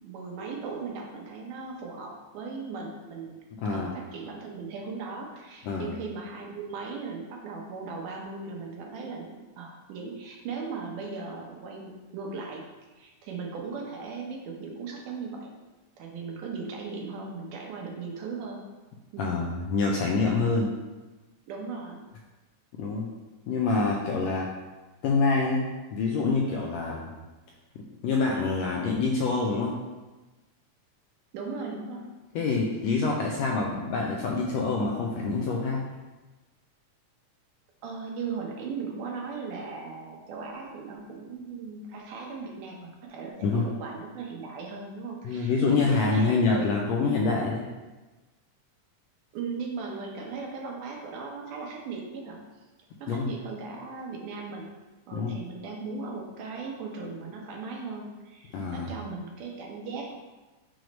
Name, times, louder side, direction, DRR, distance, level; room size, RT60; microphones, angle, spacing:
voice 1, 0.0-3.4 3.7-12.7 13.0-15.5 16.0-18.6 19.1-19.4 21.5-22.1 31.3-32.1 37.8-46.8 49.3-52.4 53.0-54.7 55.1-60.1, right 4 dB, 85° right, 0 dB, 2.4 m, -38 dB
voice 2, 3.6-3.9 5.6-5.9 19.2-20.7 22.8-23.1 23.5-24.5 25.0-27.1 27.7-29.8 32.3-35.8 43.4-43.7 45.2-47.7 53.1-53.3 55.1-55.4 58.5-58.9, left 4 dB, 80° left, -1 dB, 1.5 m, -26 dB
6.2 x 3.1 x 5.1 m, 1.2 s
omnidirectional pair, 3.5 m